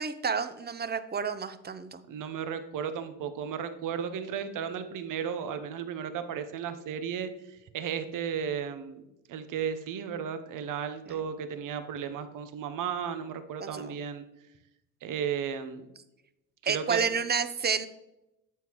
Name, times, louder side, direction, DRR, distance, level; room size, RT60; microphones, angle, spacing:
voice 1, 0.0-2.0 11.1-11.2 13.6-14.0 16.7-17.9, right 6 dB, 30° right, 11 dB, 0.7 m, -30 dB
voice 2, 2.1-9.0 9.3-14.3 15.0-15.9 16.7-17.0, right 7 dB, 65° right, 10 dB, 0.9 m, -34 dB
9.1 x 7.6 x 3.1 m, 0.89 s
supercardioid pair, 70°, 35 cm